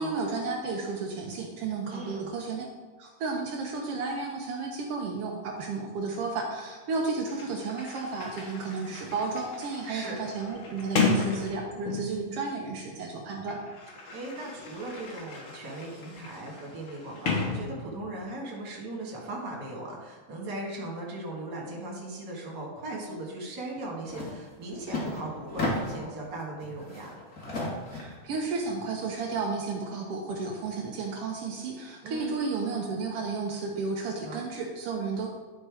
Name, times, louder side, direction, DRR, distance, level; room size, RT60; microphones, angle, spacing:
voice 1, 0.0-2.6 3.0-13.6 27.9-35.3, right 4 dB, 75° right, -1 dB, 1.3 m, -33 dB
voice 2, 1.9-2.4 9.9-10.1 14.1-27.2 32.0-32.4 34.2-34.4, right 2 dB, 40° right, -2 dB, 2.0 m, -38 dB
Sliding door, 7.0-7.1 7.3-12.3 13.2-18.2, left 3 dB, 60° left, 1.5 m, -34 dB
sound 1, 24.1-24.3 24.6-26.1 26.6-28.2, left 2 dB, 35° left, 1.5 m, -33 dB
10.5 x 4.4 x 4.8 m, 1.4 s
omnidirectional pair, 3.8 m